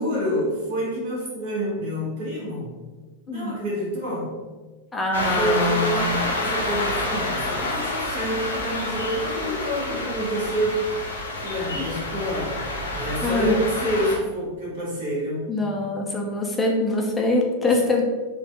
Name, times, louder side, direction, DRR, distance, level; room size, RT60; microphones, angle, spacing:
voice 1, 0.0-2.7 3.3-4.4 5.2-11.0 11.4-12.6 12.9-15.5 15.7-15.9 17.6-17.8, equal, 50° right, -6 dB, 1.5 m, -28 dB
voice 2, 3.3-3.6 4.9-6.1 11.8-11.9 13.2-13.6 15.5-18.0, left 2 dB, 10° left, 0 dB, 0.5 m, -24 dB
sound 1, 5.1-14.2, left 2 dB, 70° left, 0.5 m, -28 dB
4.1 x 2.3 x 2.8 m, 1.3 s
figure-of-eight pair, 90°, 0 cm